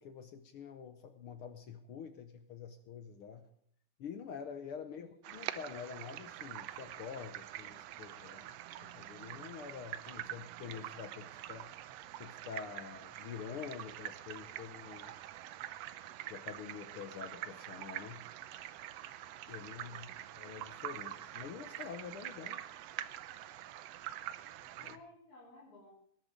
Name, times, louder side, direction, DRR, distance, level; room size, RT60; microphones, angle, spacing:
voice 1, 0.0-3.5 4.0-8.6 8.8-11.7 12.2-15.1 16.3-18.2 19.5-22.6 24.8-25.0, left 7 dB, 70° left, 8 dB, 1.3 m, -47 dB
sound 1, 5.2-25.0, right 13 dB, 75° right, 1.5 m, -45 dB
voice 2, 19.8-20.2 24.8-25.9, left 2 dB, 30° left, -7 dB, 4.7 m, -57 dB
19.5 x 11.0 x 5.2 m, 0.63 s
omnidirectional pair, 3.5 m